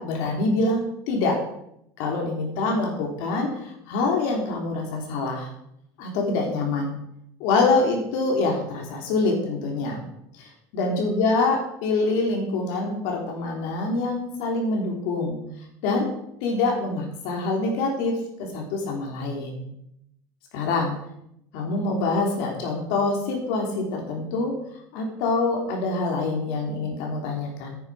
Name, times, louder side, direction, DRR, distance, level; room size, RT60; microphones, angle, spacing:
voice 1, 0.0-1.4 2.0-5.5 6.0-6.9 7.4-10.0 10.4-10.5 10.7-15.4 15.8-16.1 16.4-19.7 20.5-20.9 21.5-24.5 24.9-27.8, left 3 dB, 75° left, 0 dB, 3.4 m, -25 dB
10.5 x 9.5 x 4.9 m, 0.77 s
cardioid pair, 160°, 9 cm